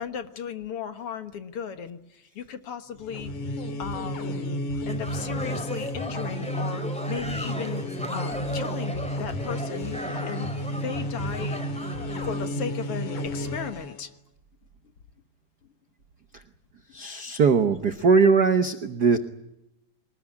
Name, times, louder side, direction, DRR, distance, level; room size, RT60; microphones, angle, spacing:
voice 1, 0.0-3.3 3.8-4.4 4.9-7.8 8.1-10.0 10.3-10.5 10.8-11.6 12.2-14.1, left 7 dB, 55° left, 10 dB, 2.1 m, -36 dB
sound 1, 3.0-14.0, equal, 90° left, 3.9 m, -32 dB
People fighting wala, 4.9-12.4, equal, ahead, 4.7 m, -37 dB
voice 2, 16.9-19.2, right 5 dB, 60° right, 9 dB, 1.0 m, -20 dB
23.5 x 20.0 x 9.9 m, 0.88 s
omnidirectional pair, 3.3 m